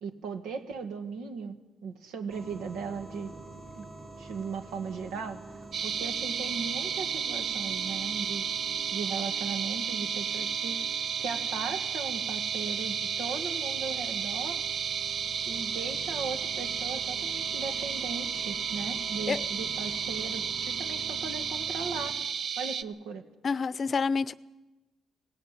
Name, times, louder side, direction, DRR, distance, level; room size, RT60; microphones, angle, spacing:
voice 1, 0.0-3.4 3.8-3.9 4.2-5.4 5.8-8.5 8.9-10.8 11.2-14.6 15.5-22.2 22.6-23.3, right 5 dB, 90° right, 7 dB, 1.9 m, -37 dB
sound 1, 2.3-22.1, right 3 dB, 35° right, 3.5 m, -46 dB
sound 2, 5.7-22.8, right 7 dB, 60° right, 0.7 m, -32 dB
voice 2, 23.4-24.3, left 5 dB, 40° left, 17 dB, 0.7 m, -28 dB
18.0 x 17.0 x 9.1 m, 1.1 s
cardioid pair, 90°, 0 cm